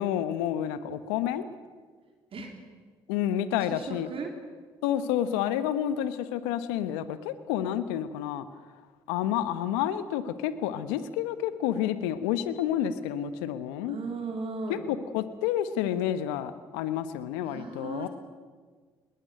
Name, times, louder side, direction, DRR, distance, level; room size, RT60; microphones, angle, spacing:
voice 1, 0.0-1.5 3.1-4.1 4.8-8.5 9.1-14.0 14.7-14.8 15.1-18.1, left 10 dB, 80° left, 13 dB, 1.1 m, -29 dB
voice 2, 3.7-4.3 13.9-14.8 17.4-18.1, right 4 dB, 50° right, 2 dB, 3.6 m, -36 dB
20.5 x 19.0 x 9.0 m, 1.5 s
hypercardioid pair, 50°, 12 cm